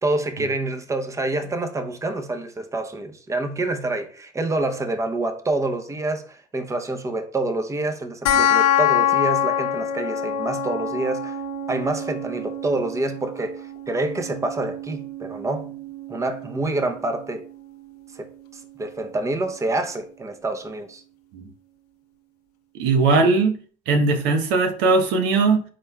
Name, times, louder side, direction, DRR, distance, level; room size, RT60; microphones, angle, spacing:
voice 1, 0.0-11.4 11.7-15.7 16.1-17.4 18.1-21.0 23.2-23.3, right 2 dB, 15° right, 0.7 m, -27 dB
sound 1, 8.3-19.2, left 7 dB, 90° left, 0.6 m, -26 dB
voice 2, 22.7-23.6 23.9-25.6, right 3 dB, 70° right, 1.0 m, -19 dB
5.1 x 4.2 x 2.3 m
hypercardioid pair, 70°, 19 cm